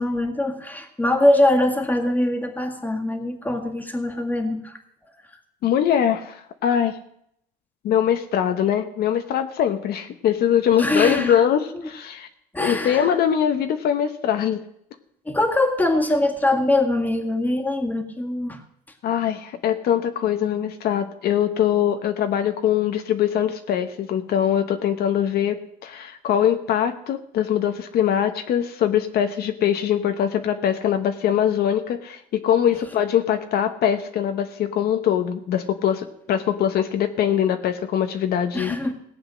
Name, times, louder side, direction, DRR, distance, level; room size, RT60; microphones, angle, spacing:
voice 1, 0.0-4.8 10.8-11.4 12.5-13.1 15.3-18.6 38.5-38.9, left 1 dB, 10° left, 5 dB, 1.9 m, -22 dB
voice 2, 5.6-7.0 7.8-12.3 12.6-14.6 19.0-25.6 25.8-38.8, left 9 dB, 65° left, 7 dB, 1.0 m, -22 dB
17.0 x 8.0 x 6.3 m, 0.73 s
cardioid pair, 110°, 17 cm